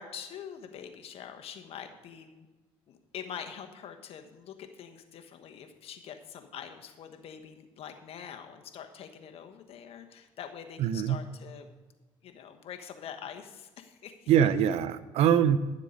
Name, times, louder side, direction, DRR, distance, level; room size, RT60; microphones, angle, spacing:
voice 1, 0.0-2.5 2.9-11.7 12.2-14.3, left 8 dB, 65° left, 6 dB, 1.2 m, -44 dB
voice 2, 10.8-11.2 14.3-15.6, right 9 dB, 75° right, 14 dB, 0.6 m, -23 dB
11.5 x 7.4 x 5.1 m, 1.2 s
supercardioid pair, 80°, 11 cm